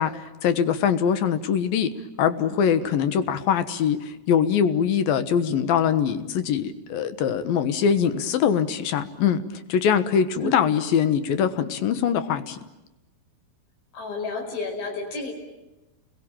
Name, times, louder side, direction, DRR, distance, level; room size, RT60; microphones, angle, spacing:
voice 1, 0.0-9.4 9.7-12.6, left 8 dB, 65° left, 11 dB, 2.8 m, -23 dB
voice 2, 10.4-10.8 13.9-15.3, left 3 dB, 90° left, 1 dB, 7.4 m, -31 dB
29.5 x 21.5 x 8.9 m, 1.0 s
omnidirectional pair, 4.8 m